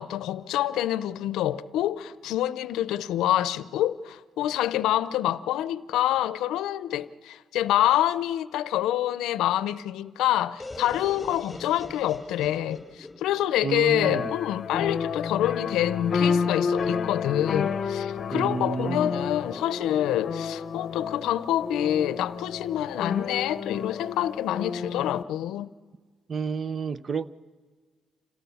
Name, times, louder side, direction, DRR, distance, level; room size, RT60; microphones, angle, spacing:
voice 1, 0.0-25.7, left 12 dB, 90° left, 0.6 m, -27 dB
sound 1, 10.6-14.4, left 2 dB, 15° left, 5.0 m, -43 dB
voice 2, 13.6-14.3 18.3-19.1 26.3-27.3, right 5 dB, 40° right, 0.7 m, -30 dB
sound 2, 14.0-25.2, left 6 dB, 55° left, 0.8 m, -30 dB
27.0 x 17.0 x 7.1 m
cardioid pair, 90°, 0 cm